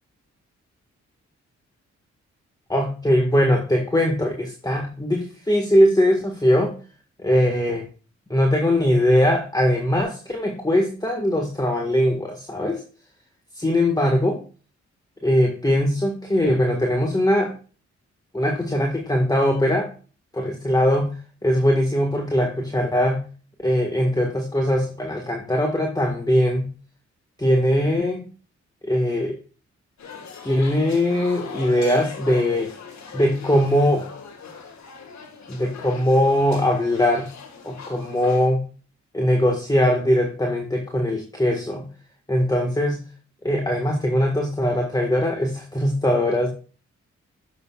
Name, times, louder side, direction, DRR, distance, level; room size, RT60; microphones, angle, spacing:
voice 1, 2.7-6.7 7.2-7.8 8.3-12.8 13.5-14.4 15.2-17.5 18.3-19.9 20.3-23.2 23.6-26.7 27.4-28.2 28.8-29.4 30.4-32.7 33.1-34.1 35.5-37.3 37.6-38.6 39.1-41.9 42.3-43.0 43.4-46.5, left 1 dB, 15° left, 2 dB, 1.7 m, -21 dB
sound 1, 30.0-38.5, left 5 dB, 70° left, 1.8 m, -40 dB
11.0 x 6.8 x 2.4 m, 0.37 s
cardioid pair, 55°, 29 cm